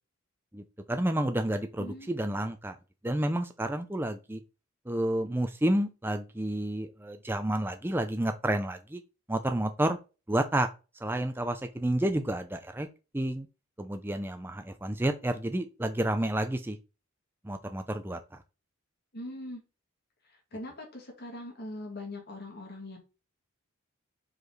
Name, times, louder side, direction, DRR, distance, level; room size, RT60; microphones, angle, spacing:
voice 1, 0.5-2.8 3.0-4.4 4.9-9.0 9.3-10.0 10.3-10.7 11.0-12.9 13.1-13.5 13.8-16.8 17.4-18.2, right 1 dB, 10° right, 0.5 m, -30 dB
voice 2, 1.8-2.4 19.1-19.6 20.3-23.0, left 1 dB, 45° left, 2.2 m, -42 dB
5.0 x 4.8 x 3.9 m
head